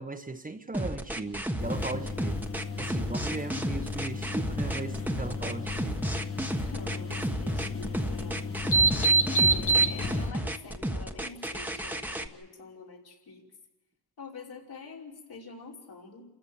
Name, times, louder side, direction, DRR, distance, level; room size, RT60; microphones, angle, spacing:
voice 1, 0.0-2.4 2.8-6.0, right 3 dB, 20° right, 1.2 m, -37 dB
sound 1, 0.7-12.3, right 1 dB, 5° right, 1.4 m, -32 dB
sound 2, 1.6-10.3, right 2 dB, 35° left, 1.5 m, -29 dB
voice 2, 6.6-8.7 9.3-13.4 14.2-16.2, left 4 dB, 70° left, 5.5 m, -46 dB
28.5 x 14.5 x 8.9 m
cardioid pair, 105°, 39 cm